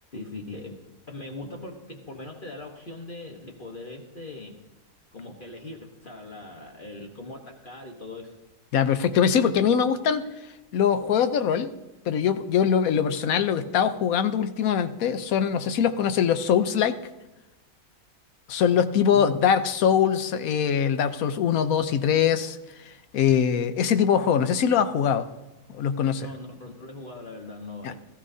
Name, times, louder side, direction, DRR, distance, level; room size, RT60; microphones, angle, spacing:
voice 1, 0.1-0.7 1.1-4.6 5.1-8.3 19.1-19.3 26.2-27.9, left 2 dB, 40° left, 1 dB, 1.3 m, -40 dB
voice 2, 8.7-10.2 10.7-11.7 12.1-17.0 18.5-22.6 23.1-25.3 25.8-26.3 27.8-27.9, left 8 dB, 85° left, 10 dB, 1.2 m, -22 dB
17.0 x 14.5 x 2.7 m, 1.0 s
omnidirectional pair, 1.5 m